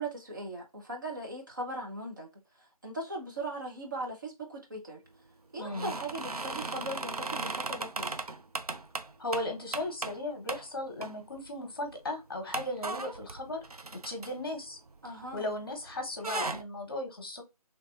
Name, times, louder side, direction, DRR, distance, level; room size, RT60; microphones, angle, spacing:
voice 1, 0.0-2.3 2.6-5.0 5.5-8.1 15.0-15.5, right 2 dB, 30° right, 0.8 m, -39 dB
voice 2, 5.6-5.9 9.2-13.6 13.9-14.8 15.3-17.4, left 1 dB, 40° left, 1.1 m, -36 dB
sound 1, 5.7-10.2 10.5-10.6 11.0-11.5 11.8-11.9 12.5-15.6 15.9-16.6, right 3 dB, 75° right, 0.6 m, -37 dB
3.2 x 3.2 x 2.5 m
figure-of-eight pair, 160°, 19 cm